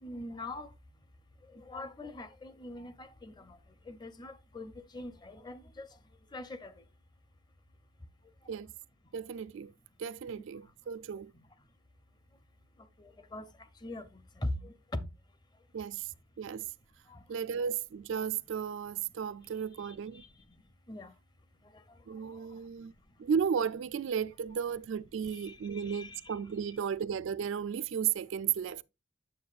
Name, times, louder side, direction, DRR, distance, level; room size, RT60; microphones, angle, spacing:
voice 1, 0.0-0.7 1.5-3.6 3.9-5.9 6.3-6.7 13.0-13.5 13.8-14.1 14.4-15.1 17.1-17.2 19.8-19.9 20.9-21.1 25.3-26.3, left 1 dB, 20° left, 0.6 m, -41 dB
voice 2, 9.1-9.7 10.0-11.3 15.7-16.7 17.3-20.2 22.1-22.9 23.2-28.8, right 7 dB, 60° right, 0.3 m, -34 dB
8.5 x 6.9 x 2.4 m
head